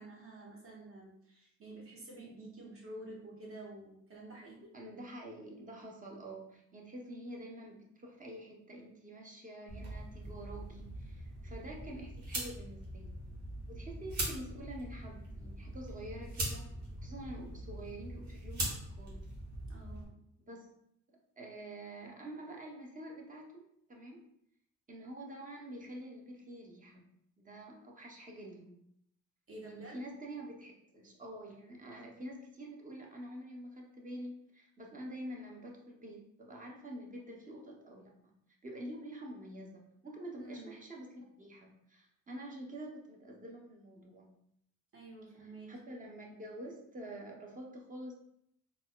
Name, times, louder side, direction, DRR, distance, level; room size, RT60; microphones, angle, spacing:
voice 1, 0.0-4.7 19.7-20.2 29.5-30.0 40.4-40.7 44.9-45.8, right 2 dB, 45° right, -3 dB, 1.2 m, -49 dB
voice 2, 4.7-13.2 13.7-19.4 20.4-20.7 21.1-24.3 24.9-27.1 27.4-28.8 29.6-44.4 45.7-48.1, right 1 dB, 25° right, 0 dB, 0.8 m, -47 dB
sound 1, 9.7-20.0, right 1 dB, 70° right, 1.3 m, -42 dB
3.9 x 2.4 x 2.2 m, 0.73 s
cardioid pair, 90°, 30 cm